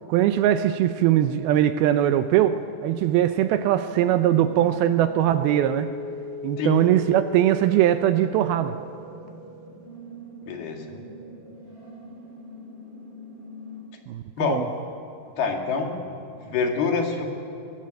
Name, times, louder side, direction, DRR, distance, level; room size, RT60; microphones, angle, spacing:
voice 1, 0.1-5.9 6.4-8.8 14.1-14.7, right 11 dB, 80° right, 10 dB, 2.2 m, -21 dB
sound 1, 3.8-13.8, left 2 dB, 55° right, 7.0 m, -40 dB
voice 2, 10.4-10.8 14.4-14.6 15.4-16.0 16.3-17.2, left 5 dB, 65° left, 2 dB, 3.9 m, -26 dB
26.0 x 20.5 x 7.8 m, 2.6 s
omnidirectional pair, 5.0 m